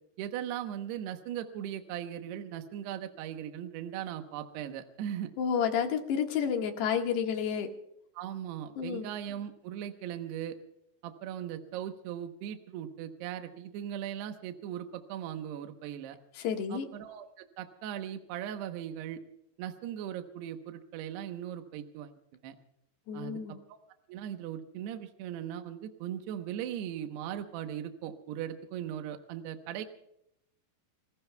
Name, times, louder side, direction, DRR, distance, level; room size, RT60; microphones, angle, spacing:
voice 1, 0.2-5.3 8.1-10.6 11.0-16.2 16.7-19.2 19.6-22.1 22.4-22.6 23.1-23.8 24.1-29.9, right 10 dB, 75° right, 6 dB, 3.0 m, -39 dB
voice 2, 5.4-7.7 8.8-9.1 16.4-16.9 23.1-23.6, left 7 dB, 75° left, 3 dB, 3.7 m, -30 dB
28.5 x 20.5 x 2.3 m, 0.77 s
omnidirectional pair, 5.0 m